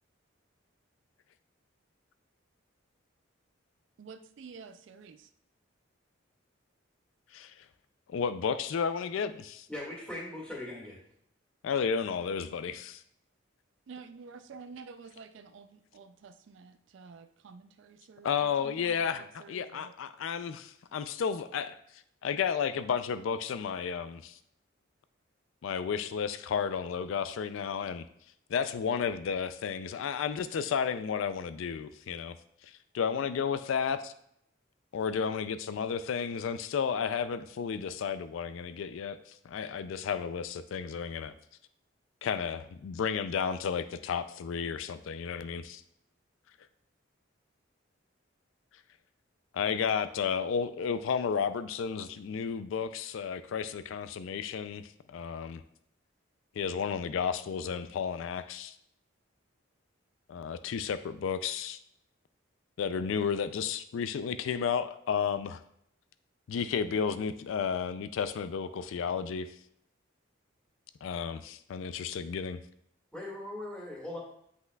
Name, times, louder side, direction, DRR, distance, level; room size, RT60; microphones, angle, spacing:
voice 1, 4.0-5.3 13.9-19.9, right 5 dB, 65° right, 10 dB, 0.3 m, -50 dB
voice 2, 7.3-7.7 8.1-9.7 11.6-13.0 18.2-24.4 25.6-28.0 28.5-32.3 32.6-34.1 34.9-41.3 42.2-45.8 49.5-55.6 56.5-58.8 60.3-61.8 62.8-65.6 66.5-69.6 71.0-72.6, left 6 dB, 75° left, 12 dB, 0.3 m, -32 dB
voice 3, 9.7-11.0 73.1-74.2, left 1 dB, 5° left, -5 dB, 1.9 m, -40 dB
7.8 x 5.6 x 2.3 m, 0.72 s
head